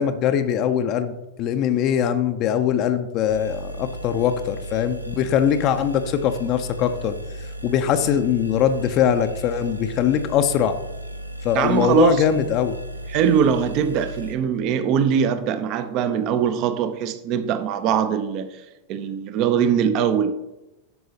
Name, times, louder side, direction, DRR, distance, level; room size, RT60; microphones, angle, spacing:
voice 1, 0.0-7.1 7.6-10.8 11.4-12.7, left 9 dB, 40° left, 0.5 m, -22 dB
sound 1, 3.3-14.4, right 1 dB, 90° right, 0.6 m, -35 dB
voice 2, 11.5-12.2 13.1-18.6 18.9-20.3, right 8 dB, 40° right, 0.6 m, -21 dB
12.5 x 5.5 x 2.8 m
figure-of-eight pair, 90°, 0 cm